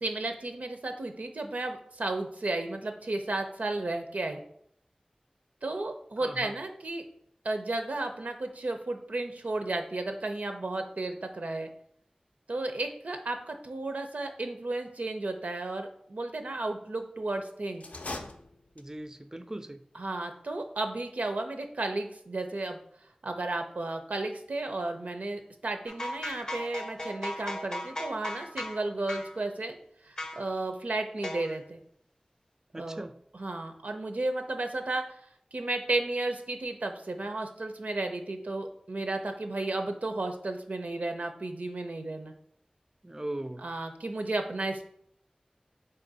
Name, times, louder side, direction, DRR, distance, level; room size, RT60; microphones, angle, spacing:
voice 1, 0.0-4.4 5.6-7.0 7.4-11.7 12.5-17.8 19.9-22.8 23.2-29.8 30.0-31.8 32.7-33.0 33.3-35.3 35.5-42.3 43.6-44.9, right 2 dB, 85° right, 5 dB, 0.5 m, -33 dB
voice 2, 6.2-6.6 18.8-19.8 32.7-33.1 43.0-43.6, right 1 dB, 20° right, 10 dB, 0.3 m, -39 dB
sound 1, 17.7-19.1, left 2 dB, 75° left, 0.4 m, -41 dB
sound 2, 25.9-28.8 29.1-29.3 30.2-30.4 31.2-31.6, left 1 dB, 30° left, 0.5 m, -37 dB
4.2 x 2.5 x 3.9 m, 0.67 s
wide cardioid pair, 50°, 2 cm